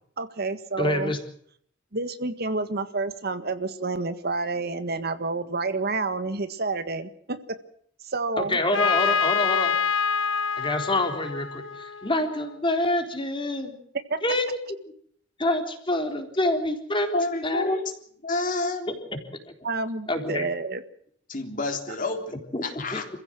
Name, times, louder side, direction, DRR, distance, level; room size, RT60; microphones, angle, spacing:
voice 1, 0.2-1.1 1.9-7.6 8.0-8.6 14.1-14.2 19.6-20.8, right 3 dB, 55° right, 11 dB, 1.6 m, -29 dB
voice 2, 0.8-1.2 8.4-9.7 10.6-13.8 14.2-14.4 15.4-17.8 20.1-20.5 22.5-22.6 22.9-23.0, left 1 dB, 25° left, 5 dB, 4.0 m, -26 dB
Trumpet, 8.7-12.5, left 6 dB, 90° left, 1.8 m, -26 dB
voice 3, 17.1-17.8 18.2-18.9 21.3-22.3 22.6-23.1, left 2 dB, 45° left, 5 dB, 3.7 m, -29 dB
27.5 x 15.5 x 7.7 m, 0.64 s
head